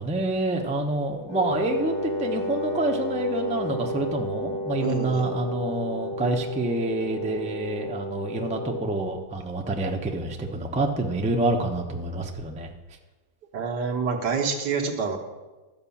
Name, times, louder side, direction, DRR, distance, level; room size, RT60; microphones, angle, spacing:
voice 1, 0.0-1.9 2.2-12.7, right 2 dB, 10° right, 1 dB, 0.5 m, -27 dB
Wind instrument woodwind instrument, 1.3-8.9, equal, 60° left, 4.5 m, -31 dB
voice 2, 4.8-5.2 13.5-15.2, right 5 dB, 75° right, 3 dB, 1.7 m, -27 dB
12.5 x 5.1 x 7.1 m, 1.2 s
omnidirectional pair, 1.8 m